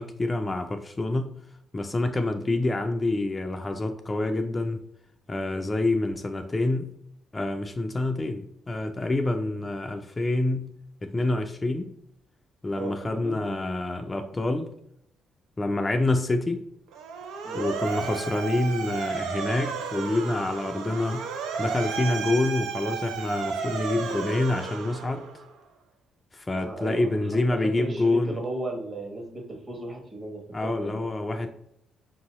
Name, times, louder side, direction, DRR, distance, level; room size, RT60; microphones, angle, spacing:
voice 1, 0.0-1.3 1.7-4.8 5.3-6.9 7.3-10.7 11.0-11.9 12.6-14.7 15.6-16.6 17.5-21.3 21.6-25.3 26.3-28.4 30.5-31.5, left 2 dB, 25° left, 6 dB, 0.3 m, -27 dB
voice 2, 12.8-13.5 17.4-17.7 26.5-27.2 27.6-31.0, right 2 dB, 35° right, 2 dB, 1.2 m, -36 dB
Motor vehicle (road) / Siren, 16.9-25.5, right 6 dB, 90° right, 0.5 m, -33 dB
5.2 x 2.7 x 3.0 m, 0.75 s
cardioid pair, 90°, 0 cm